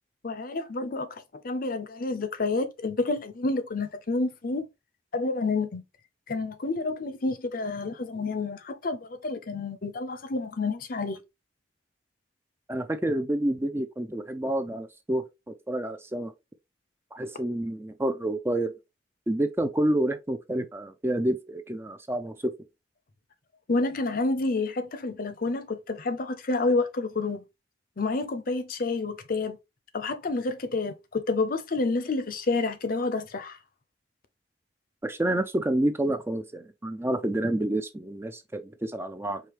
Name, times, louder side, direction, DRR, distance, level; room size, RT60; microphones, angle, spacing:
voice 1, 0.2-4.7 5.1-5.8 6.3-11.2 23.7-27.4 28.0-29.6 29.9-33.6, left 3 dB, 50° left, 0.6 m, -29 dB
voice 2, 12.7-15.2 15.7-16.3 17.1-18.7 19.3-22.5 35.0-39.4, right 1 dB, 15° right, 0.4 m, -28 dB
4.8 x 2.7 x 3.0 m
head